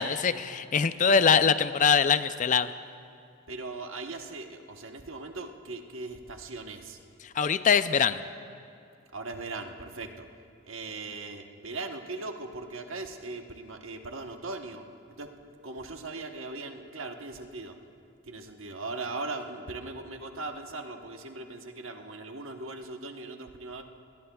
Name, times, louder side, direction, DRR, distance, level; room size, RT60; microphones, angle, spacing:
voice 1, 0.0-2.7 7.4-8.2, left 6 dB, 35° left, 12 dB, 0.4 m, -23 dB
voice 2, 3.5-7.0 9.1-10.1 10.7-14.8 15.2-15.3 15.6-17.7 18.3-23.8, right 3 dB, 70° right, 4 dB, 1.1 m, -39 dB
26.5 x 21.0 x 2.3 m, 2.5 s
head